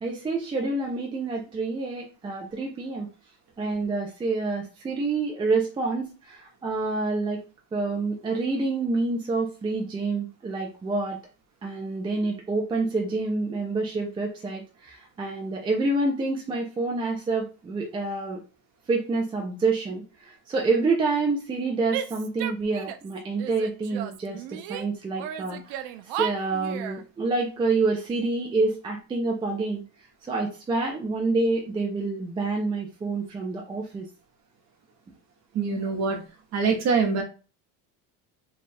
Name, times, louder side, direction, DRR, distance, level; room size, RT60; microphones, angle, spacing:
voice 1, 0.0-3.1 3.6-7.4 7.7-11.2 11.6-18.4 18.9-29.8 30.2-34.1, right 3 dB, 15° right, 0 dB, 0.3 m, -27 dB
Female speech woman speaking / Yell, 21.9-23.1 23.4-24.9 25.2-27.0, right 10 dB, 90° right, 0.6 m, -34 dB
voice 2, 35.5-36.2 36.5-37.2, right 5 dB, 40° right, 2 dB, 1.0 m, -24 dB
3.2 x 2.3 x 4.1 m, 0.34 s
cardioid pair, 175°, 40 cm